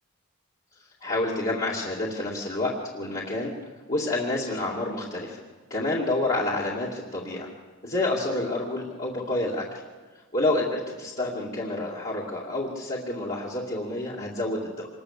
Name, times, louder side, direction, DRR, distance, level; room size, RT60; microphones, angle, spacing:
voice 1, 1.0-3.5 3.9-5.4 5.7-7.5 7.8-9.6 10.3-14.9, left 2 dB, 35° left, -6 dB, 2.6 m, -28 dB
26.0 x 21.0 x 6.8 m, 1.4 s
head